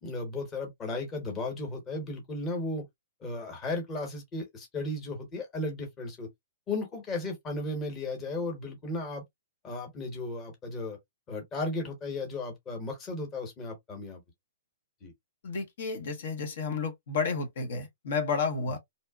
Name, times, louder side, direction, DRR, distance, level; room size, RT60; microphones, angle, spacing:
voice 1, 0.0-2.8 3.2-6.3 6.7-9.2 9.6-11.0 11.3-14.2 15.0-15.1, left 2 dB, 20° left, 1.0 m, -35 dB
voice 2, 15.4-18.8, left 4 dB, 65° left, 0.8 m, -31 dB
2.7 x 2.1 x 2.3 m
hypercardioid pair, 155°, 0 cm